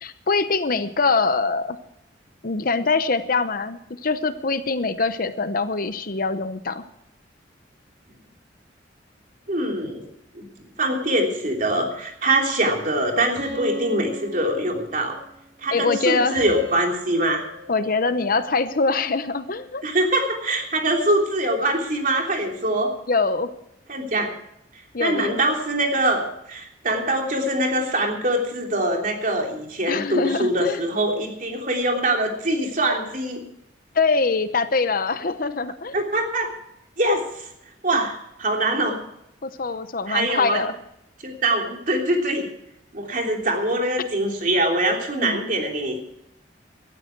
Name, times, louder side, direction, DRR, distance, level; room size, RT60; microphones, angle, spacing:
voice 1, 0.0-1.8 2.4-6.8 15.7-16.4 17.7-19.8 23.1-23.5 24.9-25.4 29.9-30.8 31.1-31.2 33.9-36.0 37.9-38.0 39.4-40.7 45.1-45.4, left 4 dB, 50° left, 11 dB, 0.8 m, -23 dB
voice 2, 9.5-10.1 10.3-10.5 10.8-15.2 15.6-17.4 19.8-22.9 23.9-24.3 25.0-33.4 35.9-36.5 37.0-37.5 37.8-39.0 40.1-40.6 41.2-42.4 42.9-46.0, right 1 dB, 45° right, 2 dB, 3.2 m, -23 dB
sound 1, 13.3-15.3 16.3-18.7, equal, 70° right, 4.4 m, -36 dB
17.5 x 13.0 x 4.6 m, 0.79 s
head